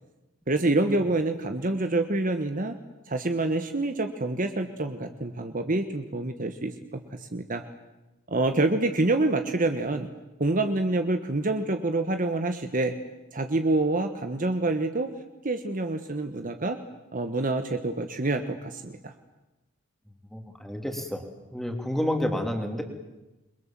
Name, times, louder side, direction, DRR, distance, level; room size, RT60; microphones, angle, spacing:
voice 1, 0.5-2.7 3.1-7.6 8.3-10.1 10.4-12.9 13.3-15.1 15.4-16.8 17.1-19.1, right 2 dB, 40° right, 7 dB, 1.3 m, -27 dB
voice 2, 20.3-21.2 21.5-22.8, left 1 dB, ahead, 3 dB, 3.2 m, -29 dB
28.5 x 22.5 x 7.6 m, 1.0 s
head